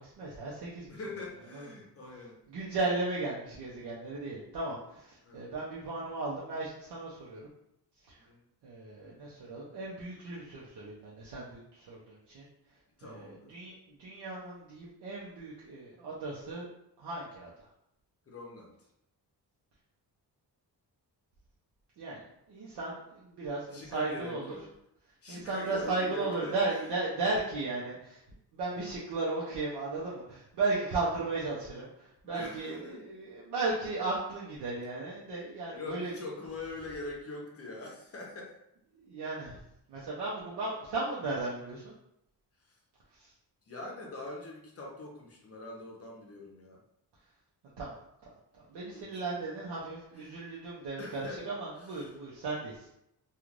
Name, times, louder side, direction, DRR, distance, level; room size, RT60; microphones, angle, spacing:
voice 1, 0.0-0.9 1.5-1.7 2.5-7.5 8.6-12.4 13.0-16.7 17.0-17.7 22.0-22.2 22.5-24.6 25.3-28.2 28.5-36.1 38.9-39.6 39.9-41.9 43.2-43.3 47.8-47.9 48.6-52.8, right 3 dB, 75° right, -7 dB, 0.7 m, -35 dB
voice 2, 0.9-2.4 5.2-5.5 8.1-8.4 13.0-13.5 18.3-18.8 23.7-24.7 25.2-27.0 32.2-33.1 35.7-38.5 42.7-42.8 43.7-46.8 48.9-49.7 50.1-50.5 51.0-52.2, left 2 dB, 35° left, -2 dB, 0.7 m, -43 dB
3.1 x 2.4 x 2.5 m, 0.79 s
wide cardioid pair, 145°, 41 cm